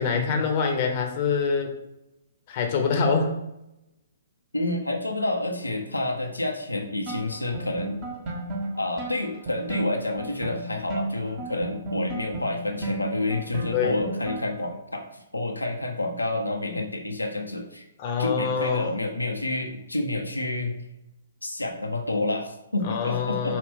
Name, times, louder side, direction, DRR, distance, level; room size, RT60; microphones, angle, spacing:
voice 1, 0.0-1.8 2.5-3.4 13.7-14.0 18.0-18.9 22.8-23.6, left 5 dB, 35° left, 2 dB, 0.8 m, -25 dB
voice 2, 4.5-8.0 8.8-17.8 18.2-20.7 21.4-23.6, left 2 dB, 85° left, 2 dB, 0.6 m, -29 dB
sound 1, 7.1-14.7, right 2 dB, 30° right, 1.1 m, -34 dB
5.0 x 2.4 x 3.6 m, 0.88 s
figure-of-eight pair, 125°, 0 cm